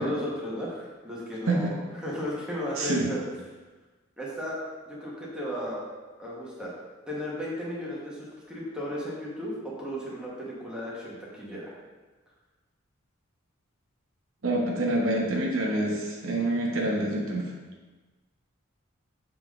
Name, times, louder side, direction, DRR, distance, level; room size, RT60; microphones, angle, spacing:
voice 1, 0.0-3.2 4.2-4.6 4.9-5.9 6.2-6.7 7.1-11.7, equal, 5° right, -6 dB, 1.2 m, -35 dB
voice 2, 2.8-3.1 14.4-17.5, right 1 dB, 80° right, -2 dB, 1.1 m, -27 dB
7.0 x 3.7 x 3.7 m, 1.3 s
head